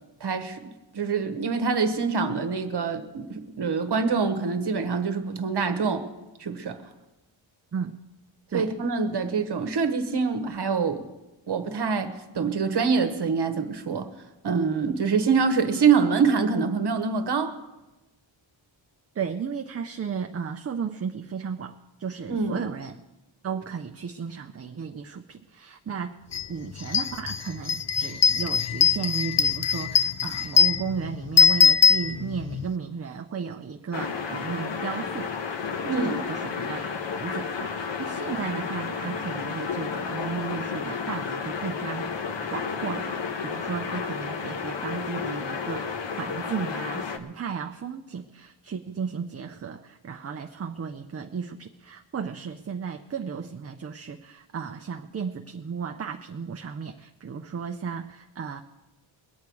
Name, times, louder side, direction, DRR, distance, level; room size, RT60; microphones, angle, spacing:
voice 1, 0.2-0.6 0.9-6.1 6.4-6.8 8.5-11.1 11.5-14.1 14.4-17.5 22.3-22.6 35.8-36.2, right 5 dB, 60° right, 7 dB, 1.2 m, -25 dB
voice 2, 19.1-23.0 23.4-26.2 26.5-35.3 35.6-36.9 37.2-42.1 42.5-58.6, right 6 dB, 35° right, 4 dB, 0.5 m, -34 dB
sound 1, 26.3-26.5 26.8-32.6, left 6 dB, 35° left, 0.4 m, -21 dB
sound 2, 33.9-47.2, left 5 dB, 65° left, 1.0 m, -32 dB
22.0 x 8.7 x 4.7 m, 1.0 s
wide cardioid pair, 180°, 47 cm